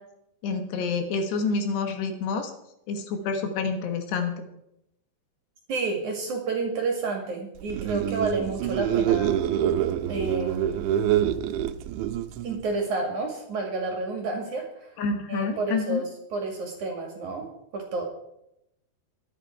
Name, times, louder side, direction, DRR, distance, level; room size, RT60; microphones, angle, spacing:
voice 1, 0.4-2.5 2.9-4.4 15.0-16.0, left 4 dB, 70° left, 5 dB, 3.3 m, -28 dB
voice 2, 5.7-9.4 10.1-10.8 12.4-14.9 15.3-17.5 17.7-18.0, right 3 dB, 50° right, 2 dB, 2.9 m, -30 dB
Murmullos frio, 7.6-12.7, right 10 dB, 85° right, 3.0 m, -26 dB
23.0 x 8.5 x 4.6 m, 0.81 s
omnidirectional pair, 5.3 m